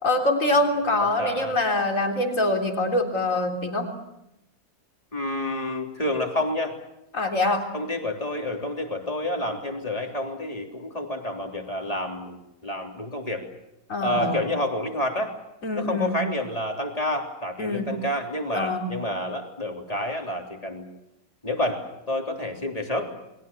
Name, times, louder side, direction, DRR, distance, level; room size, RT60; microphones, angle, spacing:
voice 1, 0.0-3.9 7.1-7.7 13.9-14.5 15.6-16.2 17.6-17.9 18.5-18.9, left 2 dB, 60° left, 2 dB, 4.1 m, -24 dB
voice 2, 1.2-1.6 5.1-6.8 7.7-13.5 14.0-15.3 15.7-20.9 21.4-23.1, left 1 dB, 25° left, 2 dB, 3.4 m, -29 dB
29.0 x 22.0 x 7.0 m, 0.88 s
omnidirectional pair, 1.6 m